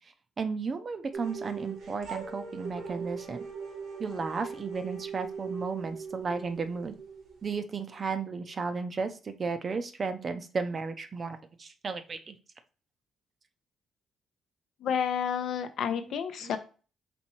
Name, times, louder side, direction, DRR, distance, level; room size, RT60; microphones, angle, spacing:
voice 1, 0.4-3.4 4.0-7.0 7.4-12.4 16.4-16.5, right 4 dB, 40° right, 9 dB, 0.5 m, -34 dB
sound 1, 1.1-8.0, right 5 dB, 75° right, 1.1 m, -40 dB
voice 2, 14.8-16.6, left 8 dB, 70° left, 10 dB, 0.6 m, -30 dB
4.3 x 3.4 x 3.0 m, 0.36 s
cardioid pair, 90°, 0 cm